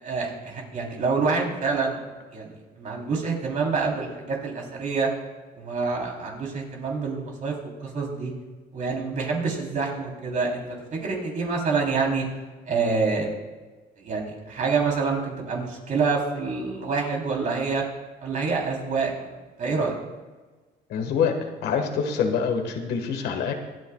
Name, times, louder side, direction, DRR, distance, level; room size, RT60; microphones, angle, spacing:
voice 1, 0.0-2.0 2.3-5.1 5.5-8.3 8.7-12.2 12.6-13.3 14.0-17.8 18.2-19.3 19.6-19.9, right 4 dB, 50° right, 0 dB, 3.5 m, -27 dB
voice 2, 20.9-23.5, left 6 dB, 75° left, 5 dB, 1.6 m, -25 dB
25.0 x 9.3 x 2.4 m, 1.3 s
cardioid pair, 110°, 17 cm